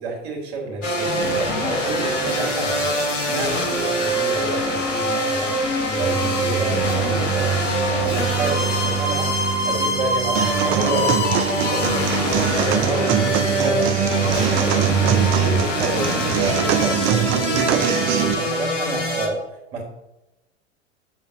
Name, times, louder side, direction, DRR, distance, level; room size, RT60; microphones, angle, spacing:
voice 1, 0.0-2.9 3.3-5.6 5.9-9.3 9.6-11.3 11.7-13.3 13.5-19.4 19.7-19.8, right 3 dB, 50° right, -1 dB, 2.9 m, -29 dB
sound 1, 0.8-19.3, left 1 dB, 80° left, 1.6 m, -24 dB
sound 2, 6.0-15.6, right 9 dB, 75° right, 2.0 m, -26 dB
sound 3, 10.4-18.3, right 12 dB, 35° right, 0.5 m, -23 dB
8.0 x 3.9 x 6.7 m, 0.97 s
figure-of-eight pair, 85°, 37 cm